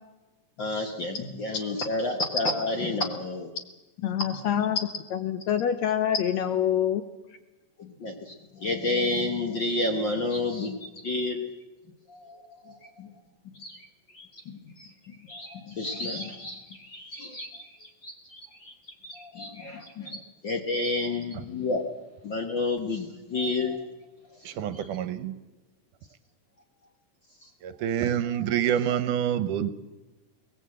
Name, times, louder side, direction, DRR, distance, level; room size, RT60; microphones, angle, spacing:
voice 1, 0.6-3.5 4.3-4.6 7.8-11.5 12.1-13.1 13.6-13.9 14.1-18.7 19.0-21.8 22.2-23.8 24.4-24.9 27.4-27.5 28.3-28.6, left 2 dB, 50° left, 4 dB, 1.5 m, -31 dB
voice 2, 4.0-7.0, left 9 dB, 70° left, 10 dB, 1.8 m, -26 dB
voice 3, 20.7-21.1 24.5-25.3 27.6-29.7, right 10 dB, 75° right, 13 dB, 2.3 m, -27 dB
22.5 x 19.0 x 7.7 m, 1.1 s
omnidirectional pair, 3.8 m